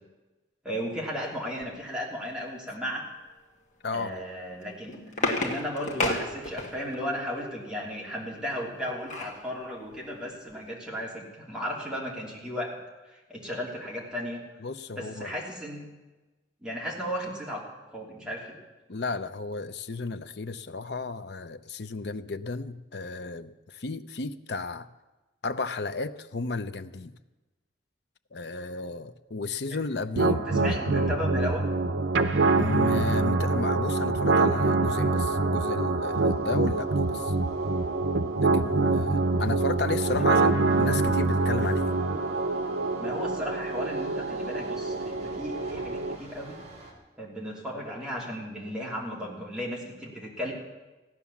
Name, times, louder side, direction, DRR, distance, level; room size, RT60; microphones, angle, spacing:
voice 1, 0.6-3.1 3.9-12.8 13.1-14.4 14.9-15.9 16.6-17.6 17.9-18.6 30.6-31.6 40.2-40.6 43.0-46.6 47.2-50.5, equal, 5° right, -4 dB, 3.0 m, -35 dB
voice 2, 3.8-4.2 14.6-15.3 18.9-24.9 25.4-27.2 28.3-30.9 32.6-37.4 38.3-42.0, left 3 dB, 60° left, 10 dB, 0.7 m, -34 dB
sound 1, 4.5-7.0 8.5-9.4 9.9-10.0 10.3-10.5, left 2 dB, 40° left, 1.8 m, -31 dB
sound 2, 30.2-46.2, right 3 dB, 85° right, 0.8 m, -25 dB
sound 3, 36.0-46.9, right 1 dB, 35° right, 2.9 m, -49 dB
16.0 x 10.5 x 7.2 m, 1.1 s
head